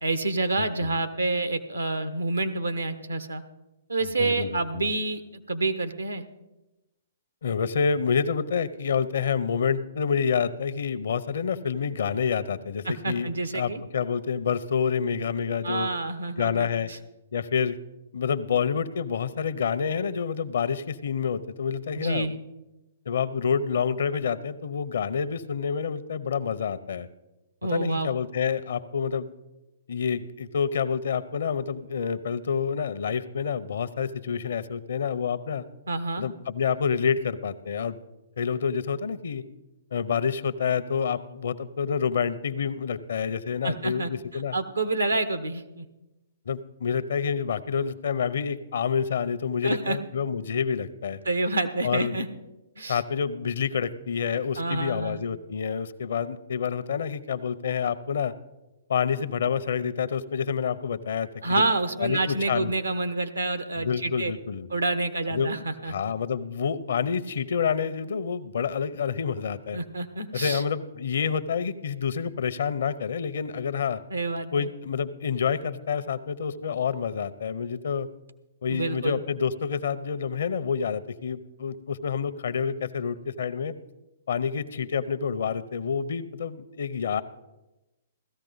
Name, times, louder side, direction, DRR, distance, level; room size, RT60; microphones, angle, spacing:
voice 1, 0.0-3.4 3.9-6.2 12.8-13.8 15.6-17.0 21.9-22.3 27.6-28.1 35.9-36.3 43.6-45.8 49.6-50.0 51.2-52.3 52.8-53.0 54.6-55.2 61.4-64.3 64.7-65.9 69.7-70.6 74.1-74.7 78.7-79.2, right 2 dB, 90° right, 9 dB, 1.0 m, -28 dB
voice 2, 0.6-0.9 4.2-4.9 7.4-15.9 16.4-16.9 17.3-17.8 18.1-22.3 23.1-27.1 27.7-29.3 29.9-35.6 36.2-38.0 38.4-39.4 39.9-44.5 46.5-51.2 51.8-52.1 52.9-58.3 58.9-61.6 62.0-62.7 63.8-64.7 65.3-65.5 65.9-69.8 70.3-74.0 74.5-78.1 78.6-83.7 84.3-87.2, left 6 dB, 65° left, 13 dB, 0.7 m, -28 dB
16.5 x 13.5 x 4.0 m, 1.0 s
figure-of-eight pair, 120°, 0 cm